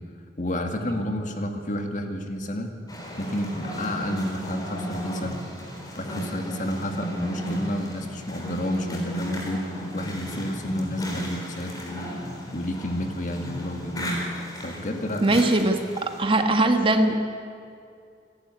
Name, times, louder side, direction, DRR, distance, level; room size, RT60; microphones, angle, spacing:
voice 1, 0.4-2.7 3.2-5.4 6.0-14.2 14.6-15.4, left 1 dB, 45° left, 5 dB, 2.0 m, -30 dB
sound 1, 2.9-16.4, equal, 20° left, 4.1 m, -34 dB
voice 2, 15.2-17.3, right 2 dB, 30° right, 6 dB, 1.5 m, -21 dB
27.0 x 12.0 x 9.7 m, 2.4 s
head